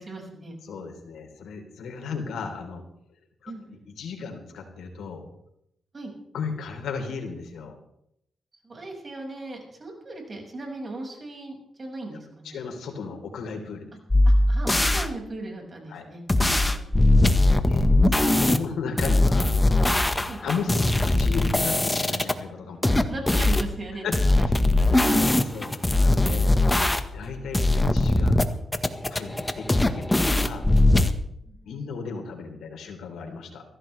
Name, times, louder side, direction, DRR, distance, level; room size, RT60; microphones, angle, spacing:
voice 1, 0.0-0.5 3.5-3.8 5.9-6.1 8.6-12.6 14.2-16.9 20.3-20.4 22.9-24.5 24.8-25.3 27.0-27.1 31.4-31.8, right 2 dB, 35° right, 1 dB, 6.1 m, -38 dB
voice 2, 0.6-2.8 3.4-5.3 6.3-7.8 12.1-12.2 12.4-13.9 15.9-16.0 17.5-17.9 18.1-19.8 20.4-23.0 24.0-24.2 25.2-26.6 27.1-28.4 29.1-30.7 31.6-33.6, left 5 dB, 90° left, 3 dB, 3.7 m, -35 dB
sound 1, 14.1-15.1 16.3-18.6 19.0-22.3 22.8-23.7 24.1-27.3 27.5-28.4 28.7-31.1, left 2 dB, 15° left, 1.4 m, -20 dB
23.5 x 16.0 x 3.4 m, 0.76 s
cardioid pair, 100°, 0 cm